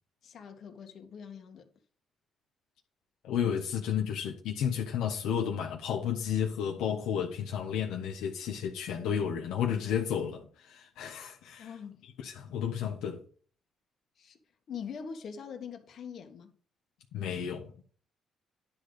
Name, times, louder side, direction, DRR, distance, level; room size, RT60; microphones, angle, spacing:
voice 1, 0.2-1.7 11.6-12.0 14.2-14.4 14.7-16.5, left 6 dB, 60° left, 1.7 m, -43 dB
voice 2, 3.2-11.7 12.0-13.2 17.1-17.7, left 8 dB, 85° left, 1.2 m, -32 dB
10.5 x 4.0 x 6.6 m
cardioid pair, 85°, 0 cm